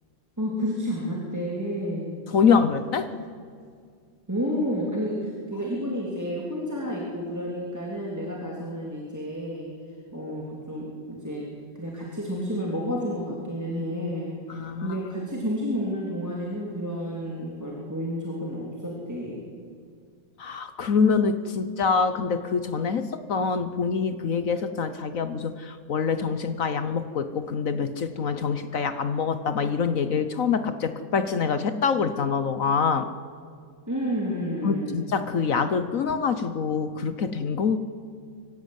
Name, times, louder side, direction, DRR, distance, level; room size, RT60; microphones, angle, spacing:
voice 1, 0.4-2.2 4.3-9.7 10.1-11.4 11.7-14.3 14.8-19.4 33.9-35.0, equal, 10° right, -3 dB, 3.1 m, -30 dB
voice 2, 2.3-3.1 14.5-15.0 20.4-33.1 34.6-37.8, left 5 dB, 55° left, 11 dB, 1.1 m, -25 dB
23.5 x 15.5 x 9.4 m, 2.1 s
omnidirectional pair, 2.0 m